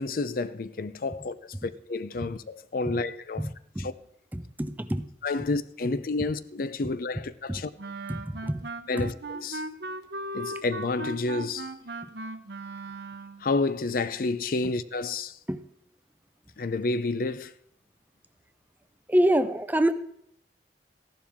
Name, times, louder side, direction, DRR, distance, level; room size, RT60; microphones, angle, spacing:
voice 1, 0.0-3.5 3.8-3.9 5.2-7.7 8.9-9.6 10.3-11.7 13.4-15.4 16.6-17.5, left 3 dB, 50° left, 0.5 m, -30 dB
voice 2, 4.3-5.1 7.5-7.6 8.1-8.6 9.0-9.1 15.5-15.6 19.1-19.9, right 1 dB, 10° right, 0.5 m, -26 dB
Wind instrument woodwind instrument, 7.8-13.5, right 2 dB, 70° right, 0.8 m, -37 dB
14.5 x 11.5 x 3.6 m
head